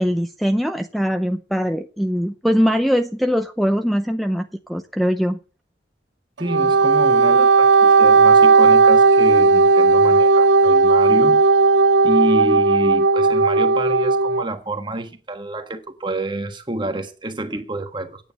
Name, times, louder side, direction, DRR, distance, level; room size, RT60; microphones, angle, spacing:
voice 1, 0.0-5.4, equal, ahead, 0.5 m, -21 dB
voice 2, 6.4-11.4 12.0-18.3, right 1 dB, 25° right, 1.4 m, -28 dB
Wind instrument woodwind instrument, 6.4-14.4, right 4 dB, 85° right, 0.5 m, -14 dB
9.1 x 9.1 x 5.7 m
head